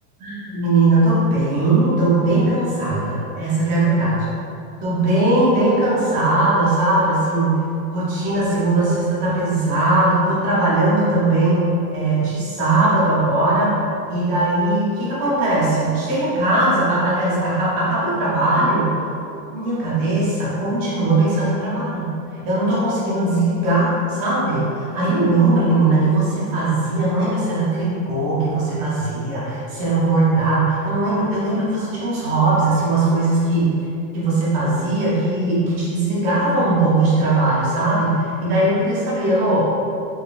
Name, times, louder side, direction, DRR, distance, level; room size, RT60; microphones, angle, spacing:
voice 1, 0.2-4.2 4.8-7.6 7.9-13.7 14.1-19.0 19.5-33.8 34.1-39.6, right 2 dB, 15° right, -8 dB, 0.5 m, -19 dB
5.6 x 4.1 x 2.3 m, 2.7 s
supercardioid pair, 180°, 48 cm